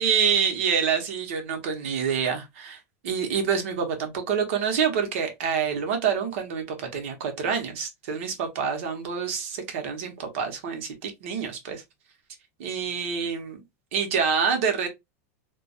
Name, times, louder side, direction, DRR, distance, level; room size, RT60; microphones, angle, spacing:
voice 1, 0.0-2.8 3.0-11.8 12.6-13.6 13.9-14.9, right 6 dB, 55° right, 0.8 m, -27 dB
2.2 x 2.2 x 2.6 m
supercardioid pair, 175°, 8 cm